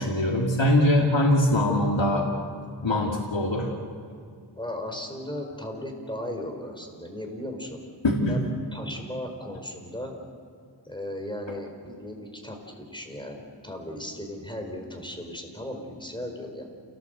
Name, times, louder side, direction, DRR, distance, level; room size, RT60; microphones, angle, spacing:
voice 1, 0.0-2.3 2.8-3.7 8.0-8.4, left 1 dB, 85° left, -1 dB, 2.6 m, -22 dB
voice 2, 4.6-7.8 8.3-10.1 10.8-16.6, left 1 dB, 10° left, 3 dB, 4.7 m, -36 dB
28.0 x 18.5 x 8.0 m, 2.3 s
wide cardioid pair, 55°, 44 cm